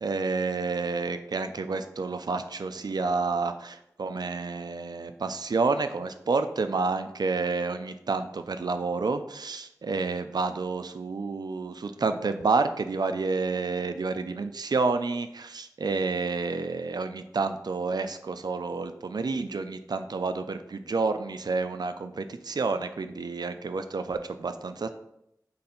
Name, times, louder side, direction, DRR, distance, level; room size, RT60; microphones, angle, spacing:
voice 1, 0.0-24.9, right 4 dB, 85° right, 9 dB, 0.4 m, -29 dB
3.8 x 3.3 x 4.2 m, 0.78 s
wide cardioid pair, 60°, 7 cm